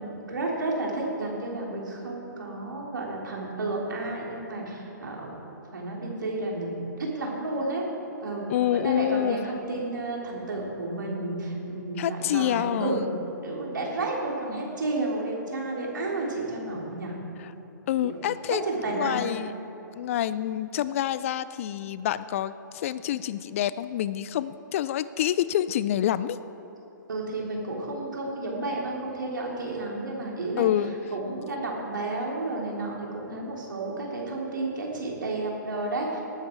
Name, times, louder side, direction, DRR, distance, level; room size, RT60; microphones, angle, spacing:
voice 1, 0.0-5.3 5.7-7.9 8.2-13.0 13.4-17.1 18.0-18.1 18.5-19.3 27.1-30.7 31.1-36.2, right 2 dB, 70° right, -2 dB, 3.4 m, -31 dB
voice 2, 8.5-9.4 12.0-13.1 17.4-17.5 17.9-18.6 18.9-19.5 20.0-26.4 30.6-30.9, left 11 dB, 40° left, 16 dB, 0.4 m, -27 dB
19.0 x 9.2 x 4.7 m, 3.0 s
figure-of-eight pair, 125°, 11 cm